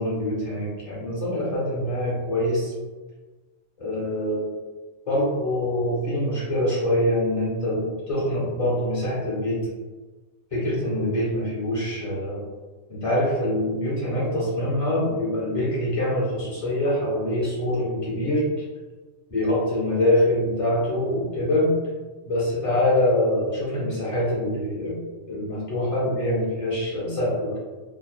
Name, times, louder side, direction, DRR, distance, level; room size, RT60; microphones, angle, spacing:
voice 1, 0.0-2.7 3.8-4.4 5.1-9.7 10.5-12.4 12.9-18.4 19.3-21.7 22.3-25.0 25.3-27.6, left 1 dB, 35° left, -6 dB, 0.6 m, -24 dB
2.6 x 2.1 x 2.3 m, 1.3 s
omnidirectional pair, 1.3 m